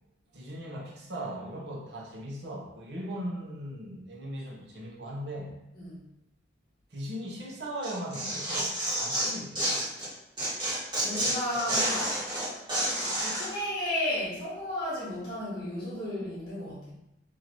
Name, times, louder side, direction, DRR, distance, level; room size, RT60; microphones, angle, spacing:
voice 1, 0.3-5.5 6.9-9.7, equal, 60° right, -3 dB, 0.9 m, -38 dB
Tearing, 7.8-10.1 10.4-13.5, right 1 dB, 25° right, 1.4 m, -29 dB
voice 2, 11.0-12.5 12.9-16.9, left 1 dB, 20° left, -8 dB, 1.2 m, -34 dB
3.1 x 2.7 x 4.0 m, 0.89 s
head